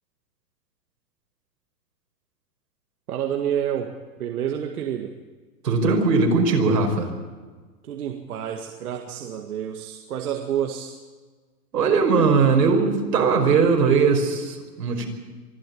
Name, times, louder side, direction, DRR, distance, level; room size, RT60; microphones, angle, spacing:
voice 1, 3.1-3.9 4.2-5.2 7.8-11.0, right 9 dB, 65° right, 4 dB, 2.0 m, -29 dB
voice 2, 5.6-7.1 11.7-15.1, right 4 dB, 80° right, 3 dB, 5.5 m, -19 dB
24.5 x 13.5 x 8.5 m, 1.4 s
hypercardioid pair, 165°, 48 cm